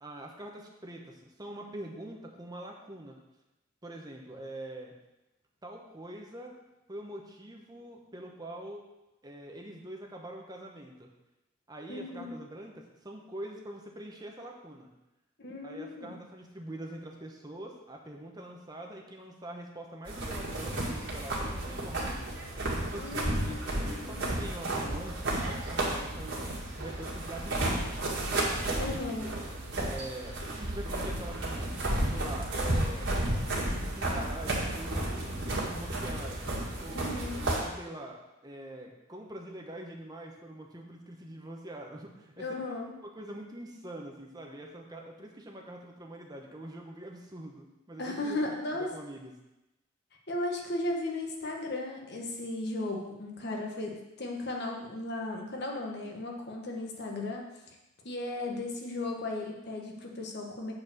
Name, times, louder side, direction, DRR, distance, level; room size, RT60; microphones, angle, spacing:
voice 1, 0.0-3.2 3.8-4.9 5.6-6.5 6.9-8.8 9.2-11.1 11.7-14.9 15.6-22.3 22.8-26.4 26.8-28.0 28.7-29.3 29.8-31.8 32.1-33.1 33.6-36.5 36.8-42.8 43.0-49.3, right 1 dB, 20° right, 1 dB, 1.0 m, -44 dB
voice 2, 11.9-12.3 15.4-16.2 23.0-24.3 28.8-29.4 36.9-37.5 42.4-42.9 48.0-48.9 50.3-57.5 58.0-60.7, left 2 dB, 55° left, 0 dB, 1.4 m, -36 dB
sound 1, 20.1-37.6, right 1 dB, 55° right, 2.0 m, -32 dB
7.8 x 4.5 x 6.7 m, 0.98 s
head